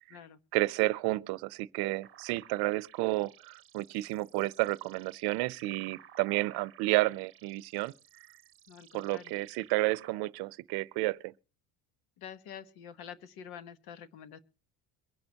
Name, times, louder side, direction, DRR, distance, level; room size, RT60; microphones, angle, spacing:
voice 1, 0.5-7.9 8.9-11.3, right 21 dB, 85° right, 0.6 m, -31 dB
sound 1, 2.0-10.1, right 10 dB, 35° right, 1.1 m, -56 dB
voice 2, 8.7-9.4 12.2-14.4, left 8 dB, 75° left, 1.3 m, -47 dB
23.0 x 10.5 x 2.8 m
cardioid pair, 140°, 37 cm